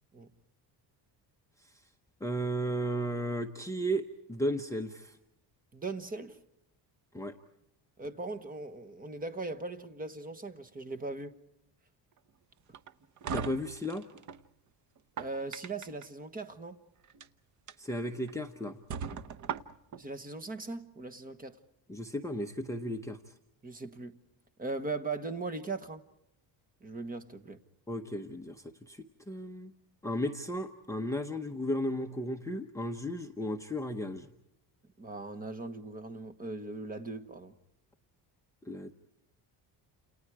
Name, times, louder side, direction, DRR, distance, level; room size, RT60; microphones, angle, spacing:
voice 1, 2.2-5.2 7.1-7.3 13.3-14.1 17.8-18.8 21.9-23.2 27.9-29.7 30.0-34.3 38.6-38.9, equal, 5° left, 0.8 m, -34 dB
voice 2, 5.7-6.4 8.0-11.3 15.2-16.8 19.9-21.6 23.6-24.2 24.6-26.0 26.8-27.6 35.0-37.5, right 3 dB, 20° right, 1.3 m, -39 dB
sound 1, 12.7-14.4 15.0-16.0 17.0-17.3 17.7-17.8 18.3-18.4 18.9-20.0, right 7 dB, 45° right, 0.9 m, -39 dB
29.5 x 29.0 x 4.7 m
cardioid pair, 175°, 42 cm